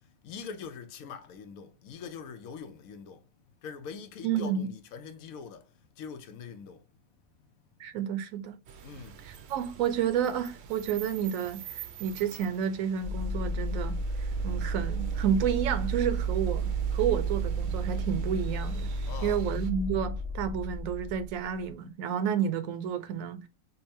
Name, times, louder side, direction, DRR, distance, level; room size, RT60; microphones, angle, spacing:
voice 1, 0.2-3.2 3.6-5.7 5.9-6.8 8.8-9.2 19.1-19.6, left 6 dB, 90° left, 1.1 m, -43 dB
voice 2, 4.2-4.7 7.8-8.6 9.2-18.9 19.2-23.5, right 8 dB, 80° right, 1.0 m, -30 dB
sound 1, 8.7-19.7, right 8 dB, 65° right, 0.7 m, -47 dB
sound 2, 13.0-21.7, right 3 dB, 30° right, 0.5 m, -32 dB
5.2 x 2.1 x 2.7 m
omnidirectional pair, 1.4 m